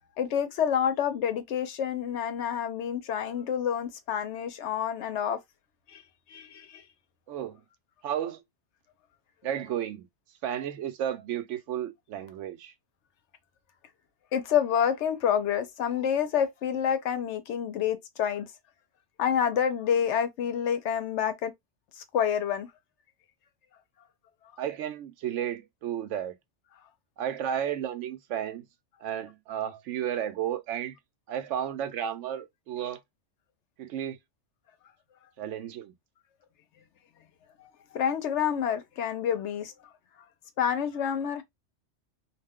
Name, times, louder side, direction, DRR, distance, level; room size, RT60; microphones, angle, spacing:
voice 1, 0.2-5.4 5.9-6.0 6.3-6.8 14.3-18.5 19.2-21.5 22.0-22.7 37.6-37.7 37.9-39.7 40.6-41.4, left 8 dB, 75° left, 0.9 m, -28 dB
voice 2, 7.3-7.6 8.0-8.4 9.4-10.1 10.4-12.7 24.6-26.4 27.2-28.7 29.0-31.0 31.3-33.0 33.8-34.2 35.4-35.9, right 10 dB, 85° right, 0.9 m, -33 dB
2.5 x 2.2 x 3.5 m
omnidirectional pair, 1.2 m